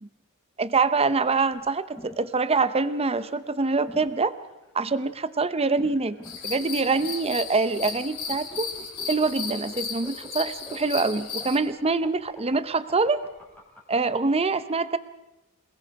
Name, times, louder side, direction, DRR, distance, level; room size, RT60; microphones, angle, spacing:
voice 1, 0.6-4.3 4.7-6.2 6.4-8.7 9.1-13.2 13.9-15.0, right 4 dB, 25° right, 14 dB, 0.8 m, -25 dB
sound 1, 1.5-14.0, equal, 10° left, 3.8 m, -47 dB
sound 2, 6.2-11.6, left 5 dB, 75° left, 4.2 m, -35 dB
27.5 x 20.0 x 4.8 m, 1.0 s
head